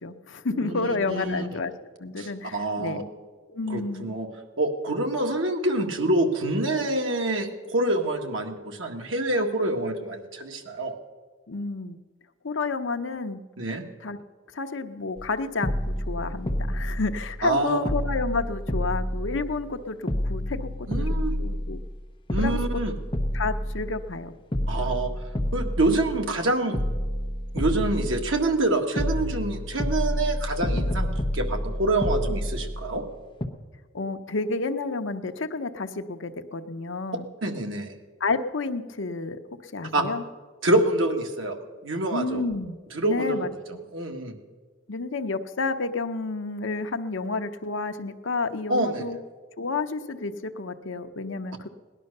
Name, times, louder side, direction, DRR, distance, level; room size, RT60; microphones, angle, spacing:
voice 1, 0.0-1.7 2.0-3.0 3.5-4.1 11.5-12.0 12.4-13.4 14.0-14.2 14.5-21.8 22.4-22.6 23.3-24.3 33.9-37.3 38.2-39.4 39.7-40.2 42.1-42.8 43.0-43.5 44.9-49.2 49.6-51.7, left 3 dB, 75° left, 8 dB, 0.8 m, -30 dB
voice 2, 0.5-1.5 2.2-3.0 3.7-4.3 4.6-10.9 13.6-13.8 17.4-17.8 20.9-21.4 22.3-22.9 24.7-25.1 25.5-26.8 27.5-33.0 37.4-37.9 39.9-40.1 40.6-41.6 41.8-42.4 42.9-43.5 43.9-44.4 48.7-49.0, right 2 dB, 80° right, 3 dB, 1.8 m, -26 dB
sound 1, 15.2-15.3 15.6-17.5 17.9-19.8 20.1-21.9 22.3-24.2 24.5-26.4 26.7-28.6 29.0-33.1 33.4-33.5, equal, 25° left, 1.0 m, -29 dB
18.0 x 11.0 x 6.7 m, 1.4 s
head